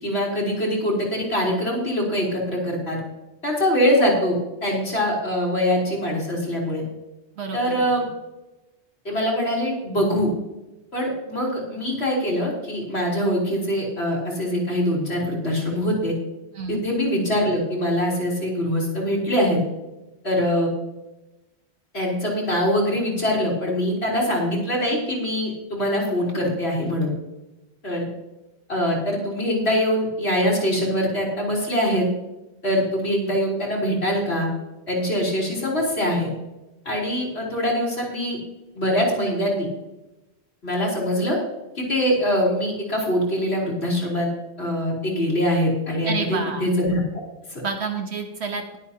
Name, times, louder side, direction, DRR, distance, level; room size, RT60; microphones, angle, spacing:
voice 1, 0.0-3.0 3.4-6.8 7.5-8.0 9.0-10.3 10.9-16.1 16.7-19.6 20.2-20.7 21.9-27.1 27.8-28.0 28.7-32.1 32.6-34.5 34.9-36.3 36.9-38.4 38.7-39.7 40.6-41.4 41.8-44.3 44.6-47.0 47.5-47.6, equal, 70° left, -3 dB, 3.9 m, -23 dB
voice 2, 7.4-7.9 16.5-16.8 46.0-46.7 47.6-48.8, right 5 dB, 75° right, 4 dB, 1.4 m, -29 dB
21.0 x 8.2 x 2.9 m, 0.98 s
omnidirectional pair, 1.1 m